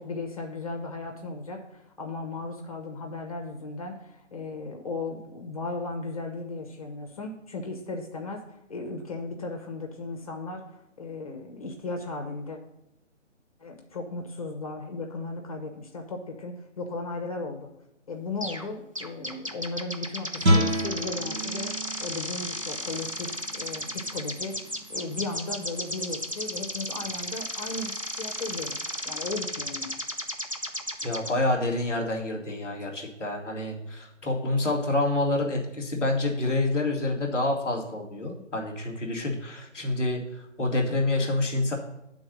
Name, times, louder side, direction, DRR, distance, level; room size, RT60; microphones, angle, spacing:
voice 1, 0.0-12.6 13.6-17.7 18.1-28.8 29.0-29.9, left 3 dB, 30° left, 3 dB, 1.0 m, -36 dB
sound 1, 18.4-18.7 19.0-31.3, equal, 30° right, 0.4 m, -34 dB
Guitar, 20.4-26.0, equal, 60° right, 1.4 m, -30 dB
voice 2, 31.0-40.2 40.6-41.7, left 2 dB, ahead, -13 dB, 0.9 m, -27 dB
8.9 x 4.0 x 6.2 m, 0.88 s
figure-of-eight pair, 155°, 37 cm